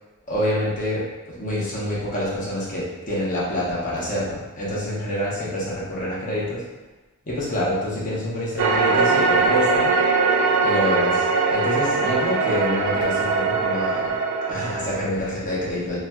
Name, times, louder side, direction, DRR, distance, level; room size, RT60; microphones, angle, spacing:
voice 1, 0.3-1.0 1.4-6.6 7.3-10.0 10.6-14.1 14.5-16.0, left 1 dB, 35° left, -7 dB, 0.8 m, -26 dB
sound 1, 8.6-15.1, right 4 dB, 90° right, 0.3 m, -21 dB
4.0 x 2.2 x 2.2 m, 1.2 s
head